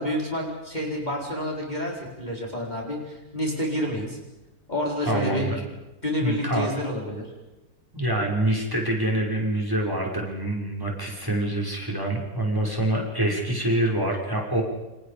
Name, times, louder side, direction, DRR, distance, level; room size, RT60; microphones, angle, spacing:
voice 1, 0.0-4.2 4.7-5.5 6.0-7.3, left 1 dB, 25° left, -2 dB, 4.6 m, -29 dB
voice 2, 5.1-5.6 6.2-6.7 7.9-14.6, right 1 dB, 10° right, 0 dB, 6.2 m, -26 dB
29.0 x 28.0 x 5.2 m, 1.0 s
omnidirectional pair, 1.8 m